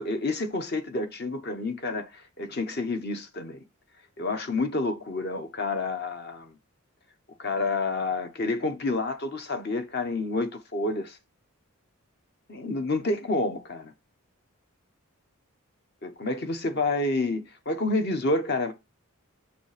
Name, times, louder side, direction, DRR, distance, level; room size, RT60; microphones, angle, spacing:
voice 1, 0.0-3.6 4.2-6.5 7.4-11.2 12.5-13.9 16.0-18.7, left 2 dB, 45° left, 0.9 m, -29 dB
6.6 x 5.1 x 3.3 m
head